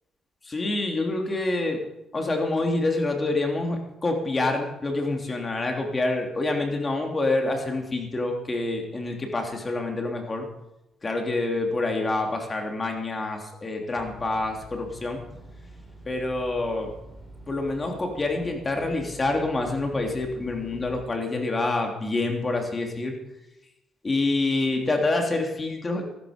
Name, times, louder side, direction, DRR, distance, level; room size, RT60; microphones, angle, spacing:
voice 1, 0.4-1.8 2.1-10.5 11.0-15.2 16.0-16.9 17.5-23.2 24.0-26.0, left 2 dB, 30° left, 2 dB, 3.2 m, -27 dB
sound 1, 14.0-21.1, right 1 dB, 5° right, 3.7 m, -46 dB
14.0 x 13.5 x 5.2 m, 0.91 s
cardioid pair, 90°, 0 cm